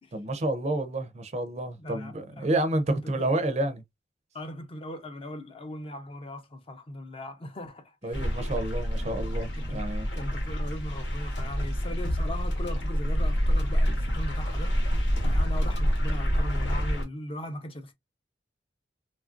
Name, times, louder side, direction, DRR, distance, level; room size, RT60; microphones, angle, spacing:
voice 1, 0.1-3.8 8.0-10.1, right 1 dB, 40° right, 0.4 m, -29 dB
voice 2, 1.8-2.5 3.0-3.3 4.3-8.1 9.5-9.8 10.1-14.7 15.2-17.9, left 1 dB, 30° left, 0.5 m, -39 dB
sound 1, 8.1-17.0, equal, 80° left, 1.1 m, -27 dB
3.0 x 2.4 x 2.4 m
head